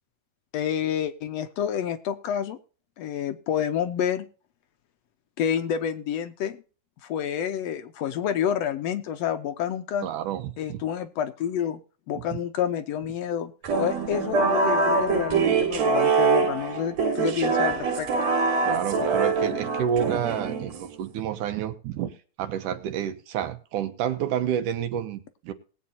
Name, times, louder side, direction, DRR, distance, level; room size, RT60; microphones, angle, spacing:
voice 1, 0.5-2.6 3.0-4.3 5.4-6.6 7.0-10.1 10.6-11.8 12.1-13.5 13.8-18.1, left 9 dB, 75° left, 9 dB, 1.6 m, -28 dB
voice 2, 10.0-10.8 18.6-22.1 22.4-25.5, right 9 dB, 80° right, 8 dB, 2.7 m, -29 dB
sound 1, 13.6-21.0, right 4 dB, 60° right, 2.8 m, -24 dB
20.0 x 8.5 x 2.7 m, 0.38 s
omnidirectional pair, 3.6 m